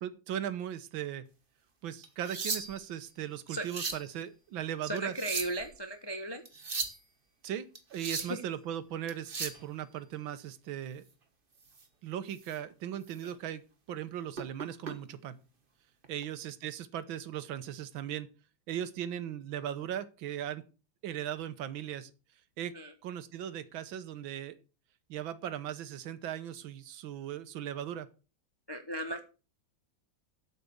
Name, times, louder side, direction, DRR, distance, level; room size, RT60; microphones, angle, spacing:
voice 1, 0.0-1.3 1.8-5.2 7.4-11.0 12.0-13.6 13.9-15.4 16.1-18.3 18.7-20.6 21.0-22.1 22.6-22.7 23.0-24.6 25.1-28.1, right 10 dB, 80° right, 13 dB, 1.7 m, -38 dB
sound 1, 2.0-2.9 3.5-4.1 5.0-5.7 6.5-7.0 7.7-8.4 9.1-9.6 11.7-11.8 12.4-12.6 13.0-13.2 14.3-14.9 16.0-16.2, right 4 dB, 30° right, 1.4 m, -37 dB
voice 2, 4.8-6.4 8.2-8.4 22.7-22.9 28.7-29.2, right 1 dB, 20° left, 6 dB, 0.7 m, -36 dB
8.3 x 7.6 x 6.9 m, 0.34 s
omnidirectional pair, 2.1 m